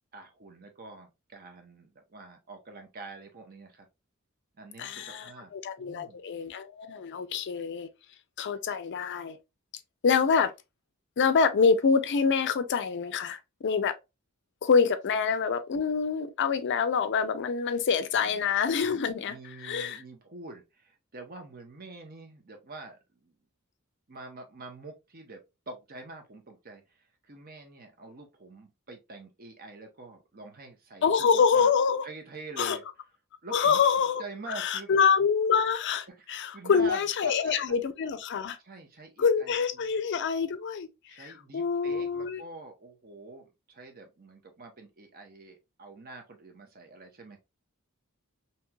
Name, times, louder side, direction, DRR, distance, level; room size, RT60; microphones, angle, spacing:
voice 1, 0.1-3.9 4.6-5.5 5.8-6.2 18.2-18.4 19.3-23.4 24.1-31.7 32.0-32.8 33.4-33.8 34.2-35.0 36.1-37.5 38.6-39.9 41.1-47.4, right 3 dB, 45° right, 0.8 m, -46 dB
voice 2, 4.8-7.9 8.4-9.4 10.0-10.5 11.2-13.9 14.6-19.4 19.6-20.0 31.0-32.1 32.6-32.8 33.5-34.2 34.5-38.6 39.2-40.9 41.2-42.4, left 6 dB, 55° left, 0.4 m, -26 dB
3.1 x 2.8 x 2.2 m
head